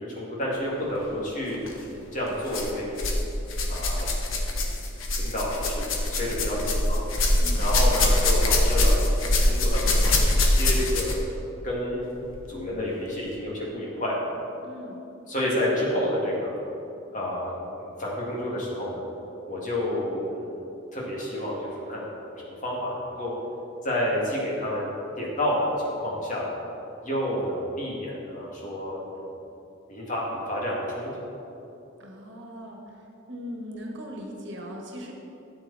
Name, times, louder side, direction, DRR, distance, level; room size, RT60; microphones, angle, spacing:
voice 1, 0.1-2.8 3.7-4.1 4.5-4.7 5.1-5.8 6.1-7.0 7.6-8.9 9.2-11.1 11.6-12.0 12.5-14.2 15.3-16.5 17.1-17.5 17.8-19.0 19.5-20.5 20.9-22.1 22.5-23.3 23.8-24.9 25.2-26.5 27.0-29.3 29.9-31.1, left 1 dB, 40° left, -4 dB, 2.3 m, -29 dB
sound 1, 1.5-1.7 2.5-3.2 3.5-11.3 12.2-12.3 13.1-13.2, left 1 dB, 80° left, 1.2 m, -23 dB
voice 2, 7.3-7.6 14.6-15.0 32.0-33.0 33.3-35.1, equal, 60° right, 0 dB, 1.5 m, -39 dB
12.5 x 7.9 x 4.2 m, 2.9 s
head